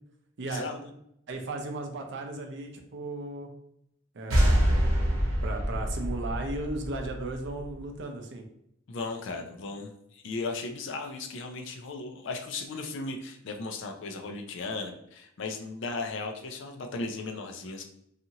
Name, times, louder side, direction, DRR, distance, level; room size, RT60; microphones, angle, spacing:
voice 1, 0.4-0.9 8.9-17.8, left 3 dB, 60° left, 4 dB, 0.4 m, -36 dB
voice 2, 1.3-3.5 4.1-4.9 5.4-8.4, right 2 dB, 60° right, 4 dB, 0.5 m, -36 dB
sound 1, 4.3-7.8, equal, 80° right, 0.8 m, -26 dB
2.7 x 2.4 x 2.8 m, 0.75 s
head